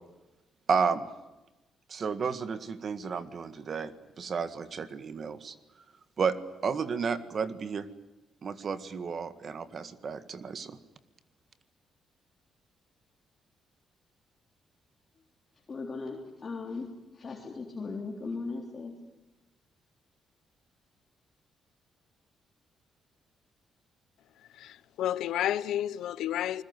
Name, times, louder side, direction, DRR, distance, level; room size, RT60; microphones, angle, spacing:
voice 1, 0.7-1.1 1.9-5.5 6.2-6.4 6.6-7.9 8.4-10.8, right 5 dB, 40° right, 1.8 m, -32 dB
voice 2, 15.7-18.9, left 3 dB, 30° left, 3.5 m, -38 dB
voice 3, 24.6-26.6, left 11 dB, 85° left, 1.1 m, -31 dB
29.0 x 21.0 x 9.6 m
cardioid pair, 150°, 0 cm